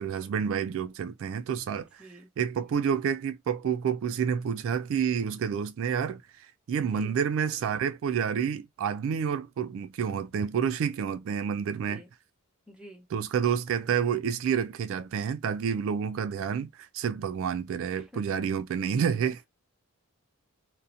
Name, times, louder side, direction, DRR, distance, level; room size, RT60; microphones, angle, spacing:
voice 1, 0.0-2.1 2.4-12.0 13.1-19.4, right 7 dB, 60° right, 0.3 m, -29 dB
voice 2, 1.7-2.3 6.8-7.2 11.9-12.1 12.7-13.1 18.1-18.3, equal, 5° right, 0.7 m, -48 dB
2.6 x 2.1 x 2.5 m
head